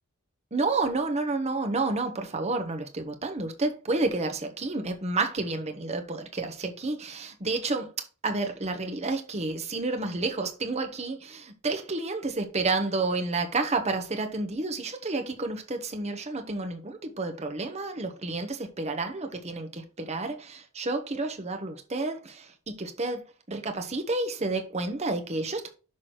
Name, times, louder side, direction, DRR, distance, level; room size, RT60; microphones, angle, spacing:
voice 1, 0.5-25.7, right 3 dB, 30° right, 1.2 m, -30 dB
6.3 x 6.0 x 4.5 m
head